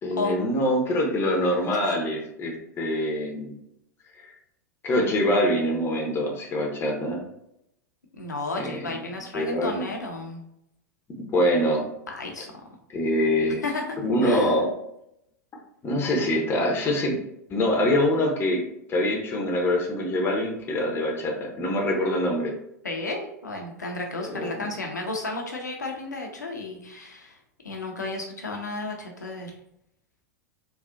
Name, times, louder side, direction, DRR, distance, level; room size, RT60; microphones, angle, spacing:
voice 1, 0.0-3.6 4.2-4.3 4.8-7.2 8.6-9.0 9.3-9.9 11.3-11.9 12.9-13.6 14.0-14.7 15.8-17.2 17.5-18.6 18.9-22.5 24.3-24.6, left 1 dB, 25° left, 0 dB, 0.7 m, -24 dB
voice 2, 1.5-1.9 8.1-10.4 12.1-12.5 13.6-14.5 22.8-27.4 27.6-29.5, left 2 dB, 80° left, 1 dB, 0.7 m, -33 dB
3.8 x 2.4 x 2.4 m, 0.78 s
figure-of-eight pair, 90°, 9 cm